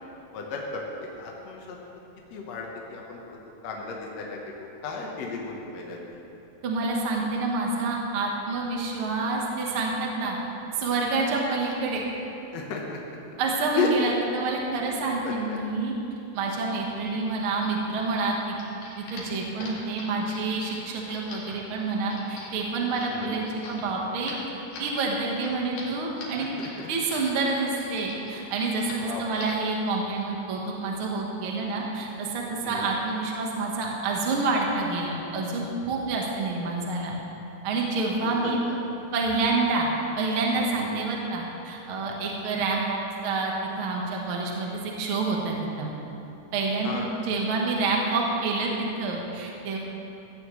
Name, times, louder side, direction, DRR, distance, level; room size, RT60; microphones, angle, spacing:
voice 1, 0.3-1.8 2.3-3.4 3.6-4.6 4.8-6.0 12.5-13.2 13.8-13.9 15.2-15.6 23.1-23.4 26.4-26.5 26.8-26.9 29.0-29.2 32.6-32.9 38.2-38.3 40.8-41.0 46.8-47.1, left 6 dB, 60° left, -1 dB, 2.1 m, -34 dB
voice 2, 6.6-10.4 10.7-12.0 13.4-15.9 16.3-18.6 19.0-24.3 24.8-26.5 26.9-37.1 37.6-38.6 39.1-39.9 40.2-45.9 46.5-49.8, right 3 dB, 50° right, -1 dB, 1.8 m, -28 dB
sound 1, 18.2-27.3 27.6-28.4 28.7-29.0 29.3-29.7, left 3 dB, 85° left, 3.8 m, -43 dB
16.0 x 14.5 x 3.2 m, 2.9 s
omnidirectional pair, 3.8 m